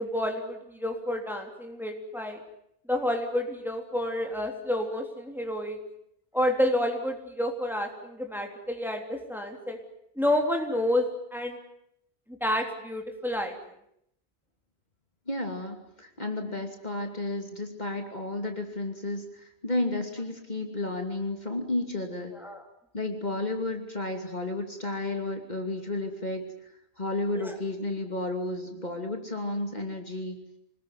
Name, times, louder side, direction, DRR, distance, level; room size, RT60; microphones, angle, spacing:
voice 1, 0.0-2.4 2.9-5.8 6.3-9.8 10.2-11.6 12.4-13.5 22.4-22.6 27.4-27.5, left 1 dB, ahead, 3 dB, 3.5 m, -29 dB
voice 2, 15.3-22.3 22.9-30.4, left 2 dB, 45° left, 4 dB, 2.9 m, -32 dB
26.0 x 20.5 x 9.7 m, 0.75 s
omnidirectional pair, 1.1 m